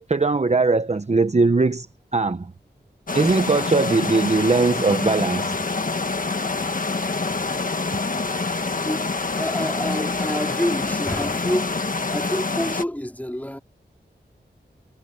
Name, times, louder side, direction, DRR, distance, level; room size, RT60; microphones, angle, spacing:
voice 1, 0.1-1.9 2.1-2.5 3.1-5.5, right 3 dB, 35° right, 0.9 m, -20 dB
sound 1, 3.1-12.8, left 3 dB, 45° left, 1.5 m, -26 dB
voice 2, 8.7-9.1 9.4-11.8 12.1-13.6, equal, 10° left, 4.1 m, -28 dB
wide cardioid pair, 70°, 19 cm